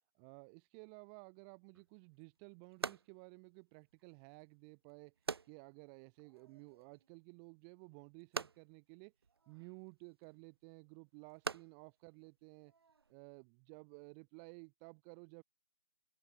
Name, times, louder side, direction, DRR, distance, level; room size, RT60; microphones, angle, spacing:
voice 1, 0.1-5.1 5.5-9.1 9.5-12.7 13.1-15.4, right 40 dB or more, 20° right, 4.6 m, -55 dB
sound 1, 1.7-13.1, right 5 dB, 75° right, 1.4 m, -49 dB
open air
hypercardioid pair, 160°, 13 cm